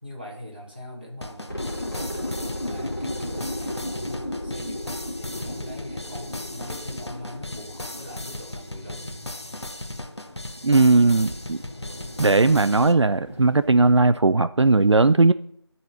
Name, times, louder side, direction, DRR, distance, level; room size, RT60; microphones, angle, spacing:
voice 1, 0.0-4.2 4.4-9.2, equal, 20° right, -4 dB, 1.5 m, -42 dB
sound 1, 1.2-12.9, left 1 dB, 65° left, 1.1 m, -37 dB
sound 2, 1.3-14.0, left 1 dB, 20° left, 1.8 m, -44 dB
sound 3, 1.5-9.3 9.6-9.7, left 1 dB, 45° left, 1.8 m, -34 dB
voice 2, 10.6-11.6 12.2-15.3, right 3 dB, 75° right, 13 dB, 0.4 m, -18 dB
12.0 x 4.2 x 5.7 m, 0.66 s
figure-of-eight pair, 180°, 15 cm